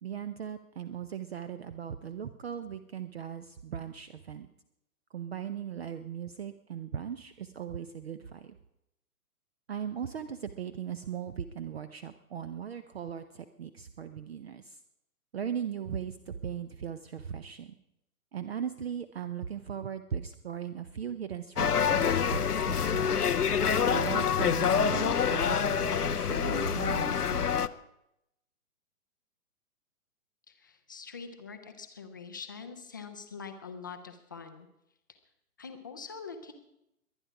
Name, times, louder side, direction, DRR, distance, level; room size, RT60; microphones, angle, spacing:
voice 1, 0.0-4.5 5.1-8.6 9.7-14.8 15.3-17.7 18.3-23.3 23.9-27.5, right 8 dB, 45° right, 12 dB, 0.7 m, -38 dB
sound 1, 21.6-27.7, left 7 dB, 80° left, 0.7 m, -27 dB
voice 2, 30.5-34.7 35.6-36.5, left 5 dB, 15° left, 6 dB, 0.5 m, -44 dB
22.0 x 9.7 x 4.8 m, 0.84 s
figure-of-eight pair, 125°, 45 cm